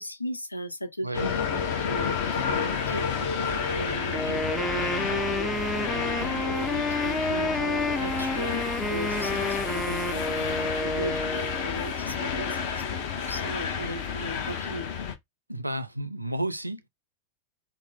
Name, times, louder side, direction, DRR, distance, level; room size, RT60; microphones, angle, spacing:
voice 1, 0.0-13.0 13.3-14.9, equal, 85° left, 0.6 m, -37 dB
voice 2, 1.0-1.3 15.5-16.9, right 1 dB, 85° right, 0.5 m, -32 dB
sound 1, 1.1-15.2, left 6 dB, 50° left, 0.9 m, -30 dB
Wind instrument woodwind instrument, 4.1-11.7, left 1 dB, 5° left, 0.4 m, -30 dB
3.7 x 2.0 x 3.7 m
figure-of-eight pair, 90°, 0 cm